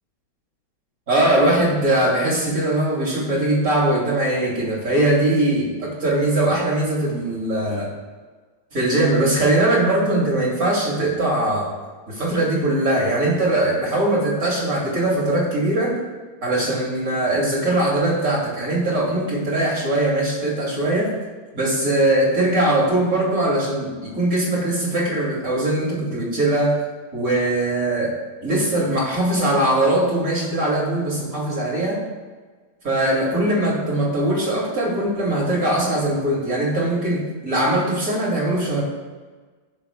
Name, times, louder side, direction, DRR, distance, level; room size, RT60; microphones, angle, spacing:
voice 1, 1.1-7.9 8.7-11.7 12.1-16.0 16.4-21.1 21.5-26.8 27.1-28.1 28.4-32.0 32.8-38.8, right 1 dB, 40° right, -4 dB, 3.0 m, -21 dB
16.5 x 6.7 x 2.3 m, 1.4 s
omnidirectional pair, 2.2 m